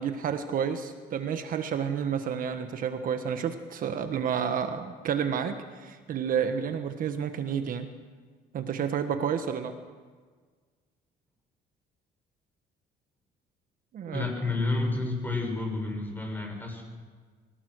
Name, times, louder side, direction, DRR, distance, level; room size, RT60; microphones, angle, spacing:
voice 1, 0.0-7.9 8.5-9.8 13.9-14.3, right 7 dB, 55° right, 8 dB, 1.4 m, -30 dB
voice 2, 14.1-16.8, left 2 dB, 10° left, 1 dB, 6.4 m, -30 dB
24.0 x 17.5 x 6.4 m, 1.5 s
cardioid pair, 110°, 17 cm